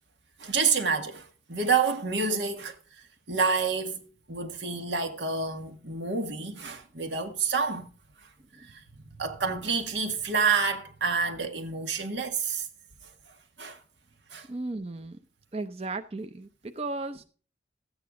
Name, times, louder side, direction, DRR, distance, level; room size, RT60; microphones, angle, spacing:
voice 1, 0.4-2.8 3.3-7.9 8.7-8.8 9.1-12.7 13.6-13.8 14.3-14.5, right 5 dB, 85° right, 1.9 m, -28 dB
voice 2, 14.5-15.2 15.5-17.2, right 2 dB, 35° right, 0.6 m, -35 dB
13.5 x 8.9 x 3.7 m
head